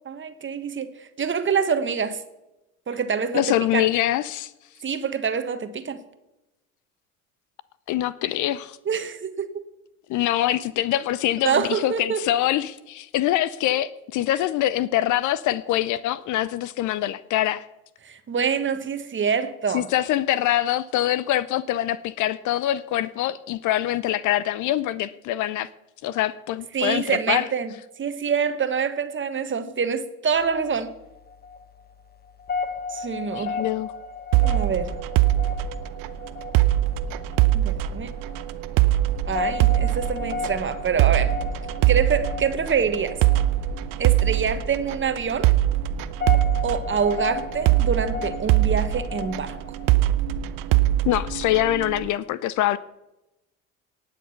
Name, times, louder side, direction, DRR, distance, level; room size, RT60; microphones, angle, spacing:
voice 1, 0.0-2.2 2.9-3.9 4.8-6.0 8.8-9.6 11.4-12.3 18.0-19.9 26.7-27.7 28.0-30.9 32.9-33.6 34.4-35.0 37.5-38.1 39.3-41.3 41.9-43.2 44.0-45.5 46.6-49.6, right 6 dB, 30° right, 1.3 m, -26 dB
voice 2, 3.3-4.5 7.9-8.8 10.1-17.7 19.7-25.7 26.0-27.4 33.4-33.9 51.0-52.8, left 13 dB, 45° left, 0.6 m, -24 dB
sound 1, 30.3-49.9, left 5 dB, 25° left, 1.1 m, -35 dB
sound 2, 34.3-52.1, right 14 dB, 55° right, 0.8 m, -23 dB
18.5 x 6.7 x 5.7 m
hypercardioid pair, 60°, 41 cm